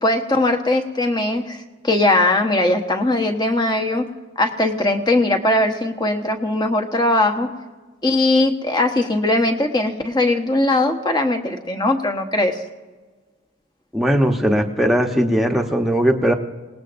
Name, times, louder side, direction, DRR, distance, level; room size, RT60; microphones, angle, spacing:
voice 1, 0.0-1.6 1.8-4.1 4.4-7.5 8.0-12.6, left 2 dB, 20° left, 3 dB, 1.1 m, -19 dB
voice 2, 13.9-16.3, equal, ahead, 2 dB, 1.0 m, -18 dB
26.5 x 19.0 x 2.6 m, 1.3 s
head